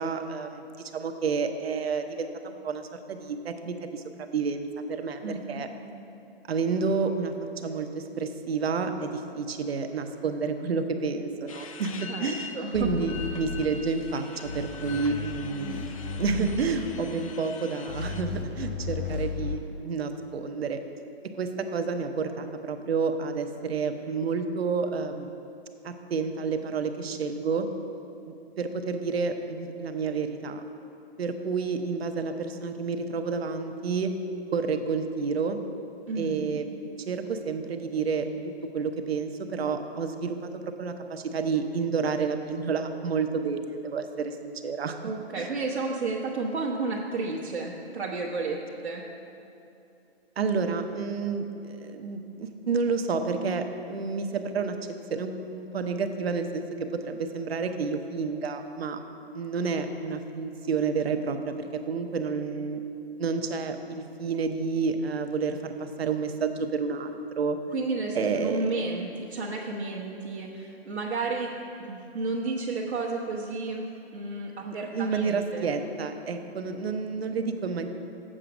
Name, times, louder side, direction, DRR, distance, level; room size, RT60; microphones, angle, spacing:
voice 1, 0.0-5.2 5.5-5.7 6.5-7.3 7.6-15.8 16.2-20.8 21.4-25.4 25.8-27.7 28.3-30.6 31.2-34.1 34.5-35.6 36.2-36.7 37.1-45.0 45.4-45.5 50.4-54.8 55.1-56.6 56.9-59.0 59.3-62.8 63.2-67.6 68.1-68.7 74.6-77.9, right 5 dB, 70° right, 7 dB, 0.9 m, -30 dB
voice 2, 5.2-5.6 12.1-12.9 36.1-36.6 45.0-49.0 67.7-71.5 71.9-75.7, right 3 dB, 90° right, -6 dB, 1.2 m, -32 dB
sound 1, 11.5-18.2, left 6 dB, 35° left, 0.4 m, -43 dB
sound 2, 12.7-14.1 14.4-17.3 17.9-19.6, left 4 dB, 60° left, 1.7 m, -35 dB
7.6 x 7.4 x 5.1 m, 2.8 s
hypercardioid pair, 150°, 32 cm